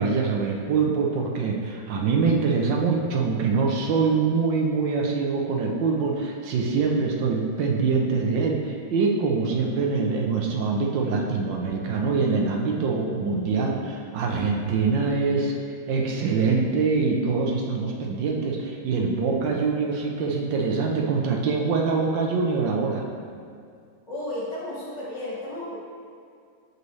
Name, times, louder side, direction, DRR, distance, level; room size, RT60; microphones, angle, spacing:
voice 1, 0.0-15.5 15.9-23.0, right 4 dB, 75° right, 0 dB, 1.4 m, -24 dB
voice 2, 24.1-25.7, left 1 dB, 40° left, -6 dB, 1.5 m, -33 dB
7.9 x 5.3 x 3.1 m, 2.3 s
omnidirectional pair, 2.0 m